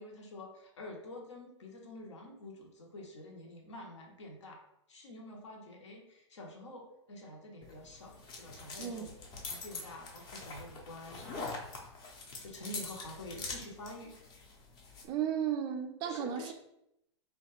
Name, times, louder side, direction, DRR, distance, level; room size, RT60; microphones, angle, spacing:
voice 1, 0.0-4.6 4.9-9.1 9.5-11.5 12.4-14.1 16.0-16.5, left 1 dB, 75° left, 1 dB, 0.8 m, -48 dB
sound 1, 7.6-15.1, left 3 dB, 30° left, 0.6 m, -44 dB
voice 2, 8.8-9.1 15.0-16.5, right 9 dB, 30° right, 6 dB, 0.3 m, -34 dB
3.0 x 2.2 x 2.9 m, 0.81 s
hypercardioid pair, 105°, 15 cm